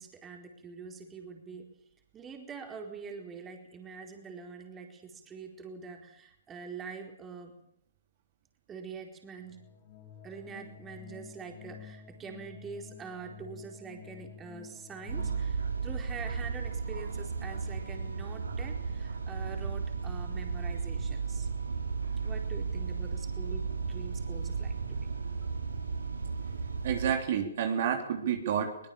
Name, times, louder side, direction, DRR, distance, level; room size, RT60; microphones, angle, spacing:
voice 1, 0.0-1.7 2.1-7.5 8.7-9.7 10.2-21.5 22.2-25.1, right 5 dB, 15° right, 2 dB, 4.4 m, -45 dB
sound 1, 9.4-15.5, left 7 dB, 45° left, 5.7 m, -50 dB
sound 2, 15.1-27.1, right 5 dB, 85° right, 4.8 m, -34 dB
voice 2, 26.8-28.9, right 8 dB, 50° right, 4 dB, 3.5 m, -29 dB
23.0 x 19.5 x 7.1 m, 0.76 s
hypercardioid pair, 135°, 0 cm